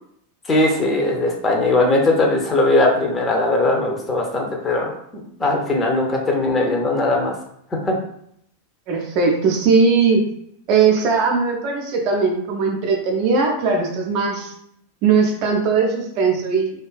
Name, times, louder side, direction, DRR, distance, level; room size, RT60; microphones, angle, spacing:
voice 1, 0.4-4.9 5.4-7.3 7.8-7.9, left 2 dB, 20° left, 0 dB, 0.5 m, -19 dB
voice 2, 8.9-10.2 10.7-14.5 15.0-16.8, right 5 dB, 40° right, 1 dB, 0.4 m, -19 dB
2.4 x 2.2 x 2.3 m, 0.70 s
figure-of-eight pair, 90°, 0 cm